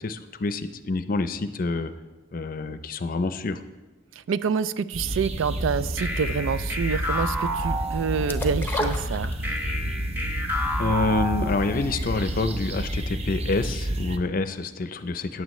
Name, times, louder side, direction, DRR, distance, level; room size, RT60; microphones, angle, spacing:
voice 1, 0.0-1.9 2.3-3.6 10.8-15.4, left 3 dB, 45° left, 11 dB, 0.5 m, -27 dB
voice 2, 4.2-9.3, right 6 dB, 85° right, 16 dB, 0.4 m, -27 dB
sound 1, 4.9-14.2, right 1 dB, 35° right, 0.6 m, -30 dB
sound 2, 6.0-8.5 9.4-11.9, equal, 10° right, 1.4 m, -31 dB
sound 3, 8.3-9.8 10.2-10.3, left 1 dB, 10° left, 0.7 m, -30 dB
14.0 x 9.6 x 3.1 m, 1.2 s
head